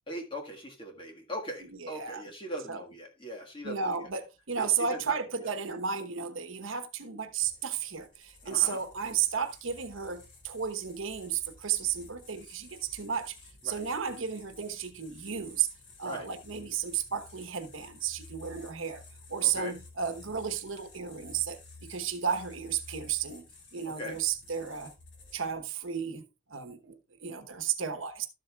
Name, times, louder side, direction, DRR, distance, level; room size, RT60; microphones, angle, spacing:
voice 1, 0.1-3.8 4.6-5.5 8.4-8.8 13.6-13.8 16.0-16.3 19.4-19.8 24.0-24.2, equal, 25° left, 1.6 m, -40 dB
voice 2, 1.7-2.2 2.7-2.8 3.6-13.4 13.6-15.7 16.0-19.0 19.3-23.4 23.7-24.9 25.3-26.2 26.5-28.3, right 7 dB, 80° right, 1.0 m, -33 dB
sound 1, 7.4-25.7, left 3 dB, 60° left, 2.4 m, -53 dB
13.0 x 7.7 x 2.3 m
head